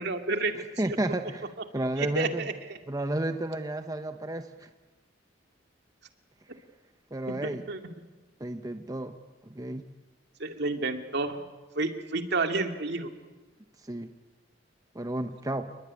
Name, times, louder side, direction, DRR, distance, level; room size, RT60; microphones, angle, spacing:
voice 1, 0.0-0.7 2.0-2.8 7.4-7.8 10.4-11.4 11.8-13.1, right 3 dB, 60° right, 6 dB, 2.4 m, -30 dB
voice 2, 0.5-1.5 1.7-2.5 2.9-4.7 7.1-7.6 8.4-9.2 9.4-9.8 13.8-14.1 14.9-15.7, right 1 dB, 20° right, 7 dB, 1.0 m, -32 dB
29.5 x 21.0 x 9.7 m, 1.2 s
head